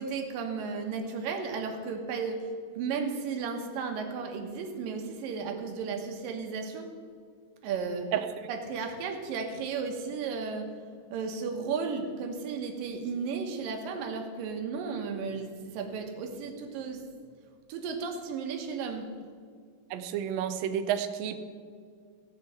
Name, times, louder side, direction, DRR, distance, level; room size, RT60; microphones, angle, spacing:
voice 1, 0.0-2.5 2.8-6.9 7.6-8.1 8.5-10.7 11.1-17.0 17.7-19.1, right 5 dB, 90° right, 4 dB, 2.9 m, -34 dB
voice 2, 19.9-21.4, right 9 dB, 75° right, 8 dB, 1.6 m, -30 dB
16.0 x 5.4 x 7.7 m, 2.1 s
omnidirectional pair, 3.8 m